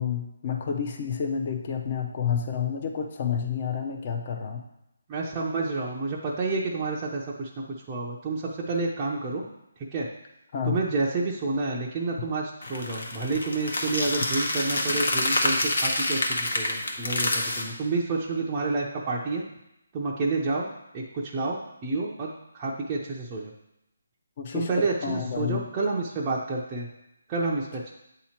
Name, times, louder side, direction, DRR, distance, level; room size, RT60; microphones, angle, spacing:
voice 1, 0.0-4.6 10.5-10.8 24.4-25.6, left 7 dB, 35° left, 3 dB, 0.7 m, -29 dB
voice 2, 5.1-7.5 7.9-9.4 9.9-10.1 10.6-19.4 19.9-23.5 24.5-26.9 27.3-27.9, right 3 dB, 20° right, -5 dB, 0.6 m, -29 dB
sound 1, 12.6-17.6, left 1 dB, 80° left, 1.2 m, -27 dB
8.3 x 2.9 x 4.3 m, 0.85 s
hypercardioid pair, 170°, 0 cm